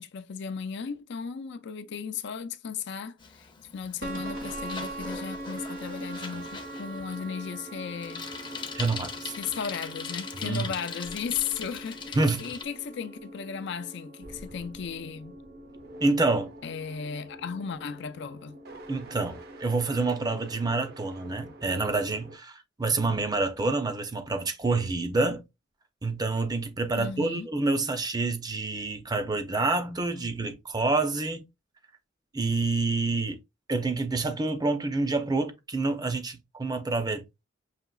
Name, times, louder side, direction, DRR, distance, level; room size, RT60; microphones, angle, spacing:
voice 1, 0.0-3.2 3.7-8.3 9.4-15.3 16.6-18.6 27.0-27.5, left 6 dB, 65° left, 0.5 m, -35 dB
Bicycle, 3.2-12.6, left 5 dB, 25° left, 0.6 m, -41 dB
sound 1, 4.0-22.4, right 1 dB, 55° right, 0.7 m, -42 dB
voice 2, 8.7-9.4 10.4-10.6 12.2-12.5 16.0-16.5 18.9-25.5 26.0-31.4 32.3-33.4 33.7-37.2, right 3 dB, 20° right, 0.6 m, -27 dB
5.7 x 2.9 x 2.3 m
head